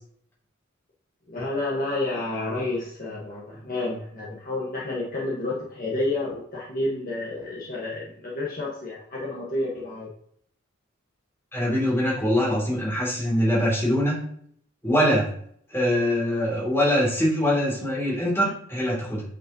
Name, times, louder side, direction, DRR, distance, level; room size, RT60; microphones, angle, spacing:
voice 1, 1.3-10.1, left 2 dB, 45° left, -6 dB, 1.6 m, -30 dB
voice 2, 11.5-14.2 14.8-15.3 15.7-19.2, equal, 10° left, -6 dB, 3.0 m, -23 dB
8.4 x 5.3 x 3.1 m, 0.64 s
head